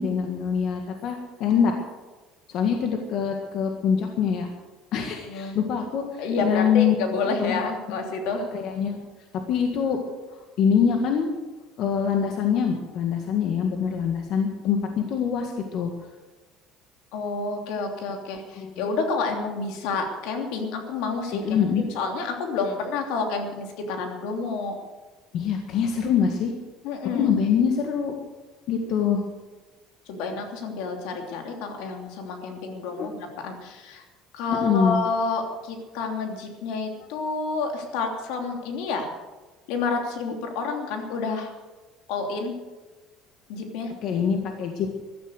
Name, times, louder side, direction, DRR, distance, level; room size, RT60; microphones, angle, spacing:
voice 1, 0.0-1.8 2.5-4.5 4.9-7.0 7.2-7.6 8.3-9.0 9.5-10.0 10.3-11.3 11.8-15.9 18.6-18.8 21.3-21.9 25.3-26.5 27.1-28.1 28.7-29.2 33.0-33.1 34.5-35.0 44.0-44.9, left 7 dB, 50° left, 3 dB, 1.7 m, -24 dB
voice 2, 5.2-5.6 6.2-8.5 17.1-21.6 21.9-24.7 26.8-27.3 30.1-34.0 34.3-39.1 39.7-41.5 42.1-42.5 43.5-43.9, left 4 dB, 75° left, 3 dB, 3.0 m, -29 dB
15.5 x 12.5 x 6.6 m, 1.2 s
cardioid pair, 155°, 0 cm